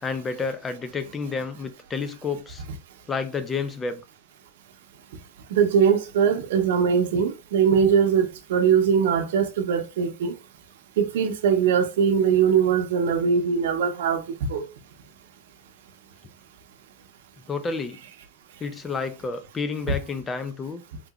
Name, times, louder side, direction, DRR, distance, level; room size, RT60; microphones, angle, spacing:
voice 1, 0.0-2.6 3.1-4.0 17.5-18.0 18.6-20.8, left 4 dB, 15° left, 0.3 m, -30 dB
voice 2, 5.5-10.3 11.0-14.2 14.5-14.6, right 7 dB, 70° right, 0.7 m, -21 dB
3.6 x 2.8 x 2.3 m
supercardioid pair, 165°, 0 cm